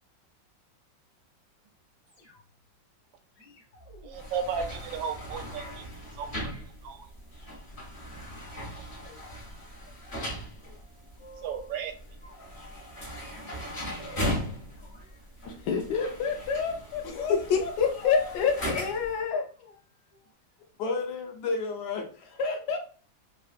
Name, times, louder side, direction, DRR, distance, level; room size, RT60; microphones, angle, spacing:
sound 1, 2.1-2.7 3.3-5.8 6.3-6.6 7.3-7.6 8.3-9.4 9.8-10.3 10.6-11.8 12.2-12.8 13.1-14.4 14.7-16.8 18.0-18.4 19.1-19.3 19.6-19.8 20.1-20.3 20.6-20.7, left 1 dB, 50° left, 1.3 m, -54 dB
voice 1, 4.0-5.8 6.2-6.5 6.8-7.1 11.4-11.9, right 6 dB, 80° right, 6 dB, 1.3 m, -34 dB
sound 2, 4.1-19.2, equal, 30° left, 0.7 m, -38 dB
voice 2, 15.5-17.4 17.6-17.7 18.0-18.3 20.8-22.8, left 4 dB, 75° left, 4 dB, 1.1 m, -31 dB
voice 3, 17.0-19.5, left 6 dB, 90° left, 4 dB, 1.4 m, -26 dB
3.4 x 2.4 x 2.4 m, 0.40 s
omnidirectional pair, 2.0 m